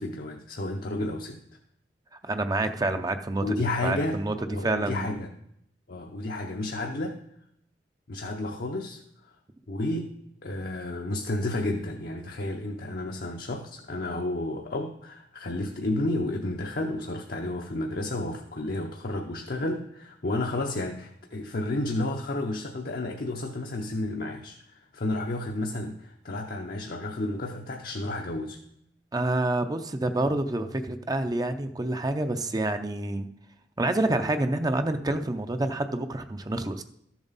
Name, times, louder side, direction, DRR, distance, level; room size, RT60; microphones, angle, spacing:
voice 1, 0.0-1.4 3.4-5.3 5.9-7.2 8.1-9.3 9.7-10.2 10.4-28.6, left 2 dB, 55° left, 2 dB, 0.8 m, -31 dB
voice 2, 2.2-3.4 3.8-4.3 4.6-5.1 29.1-33.3 33.8-36.8, right 2 dB, 20° right, 8 dB, 0.5 m, -27 dB
13.0 x 7.1 x 4.0 m, 0.75 s
head